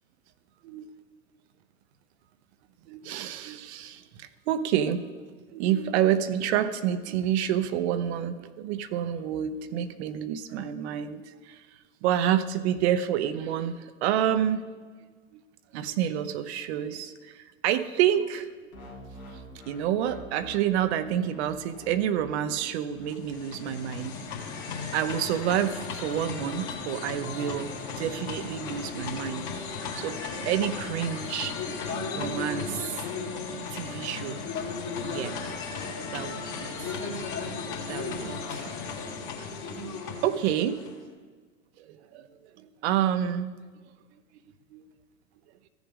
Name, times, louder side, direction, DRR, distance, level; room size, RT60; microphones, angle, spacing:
voice 1, 2.9-5.0 5.5-11.6 12.0-14.6 15.3-15.4 15.7-18.5 19.3-24.2 24.9-27.7 28.0-31.6 32.1-32.9 33.7-34.4 35.0-35.4 36.1-37.0 37.9-38.7 39.2-40.9 41.8-42.3 42.6-43.5 44.7-44.8, right 10 dB, 50° right, 12 dB, 0.7 m, -29 dB
sound 1, 18.7-25.3 26.0-28.3, left 1 dB, 85° left, 2.1 m, -47 dB
sound 2, 23.0-41.0, left 4 dB, 40° left, 2.1 m, -35 dB
15.0 x 7.0 x 3.7 m, 1.4 s
figure-of-eight pair, 90°, 42 cm